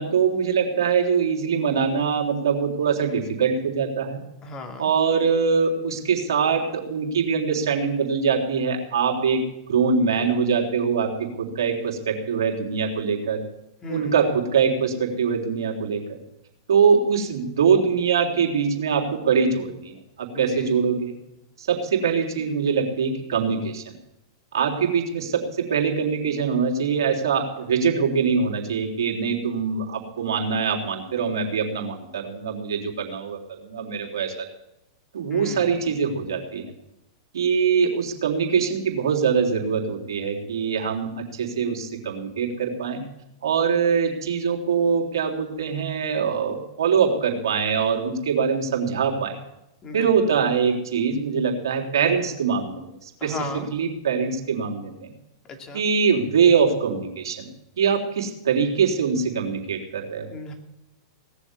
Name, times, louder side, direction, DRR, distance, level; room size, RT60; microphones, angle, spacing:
voice 1, 0.0-4.2 4.8-9.4 9.7-13.4 13.9-16.2 16.7-21.2 21.6-24.0 24.5-34.5 35.1-36.7 37.3-43.0 43.4-49.4 49.9-52.9 53.2-55.1 55.7-57.5 57.8-60.3, right 6 dB, 75° right, 0 dB, 3.6 m, -23 dB
voice 2, 4.4-4.9 13.8-14.1 20.3-20.7 35.3-35.8 49.8-50.1 53.2-53.7 55.4-55.8 60.3-60.5, left 3 dB, 30° left, 4 dB, 2.9 m, -35 dB
18.5 x 7.2 x 9.8 m, 0.89 s
hypercardioid pair, 110°, 2 cm